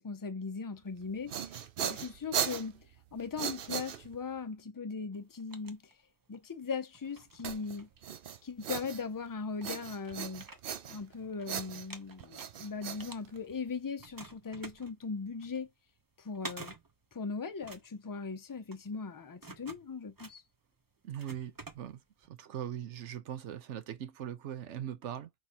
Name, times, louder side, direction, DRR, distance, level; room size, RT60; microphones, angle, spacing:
voice 1, 0.0-1.5 1.8-2.9 3.1-5.8 6.3-7.9 8.4-10.5 10.9-15.7 16.2-16.7 17.1-20.4, left 5 dB, 30° left, 0.4 m, -39 dB
sound 1, 1.0-4.4 7.4-9.3 9.6-11.1 11.5-13.7, right 9 dB, 60° right, 0.7 m, -38 dB
sound 2, 5.1-6.4 6.9-8.6 9.2-9.3 9.6-11.5 11.7-13.7 14.0-22.3, right 3 dB, 25° right, 0.6 m, -50 dB
voice 2, 21.0-25.3, right 10 dB, 80° right, 1.0 m, -41 dB
5.8 x 3.1 x 2.9 m
omnidirectional pair, 1.2 m